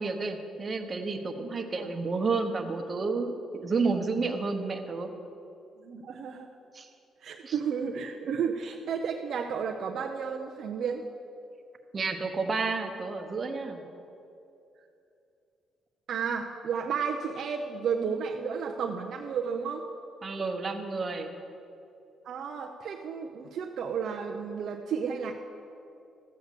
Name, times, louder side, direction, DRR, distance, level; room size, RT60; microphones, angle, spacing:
voice 1, 0.0-5.1 6.7-6.9 7.4-7.6 11.9-13.8 20.2-21.3, right 4 dB, 35° right, 5 dB, 1.2 m, -31 dB
voice 2, 5.8-6.5 7.2-11.0 16.1-19.8 22.2-25.3, right 6 dB, 65° right, 2 dB, 0.7 m, -32 dB
13.5 x 8.0 x 6.8 m, 2.7 s
cardioid pair, 90°, 0 cm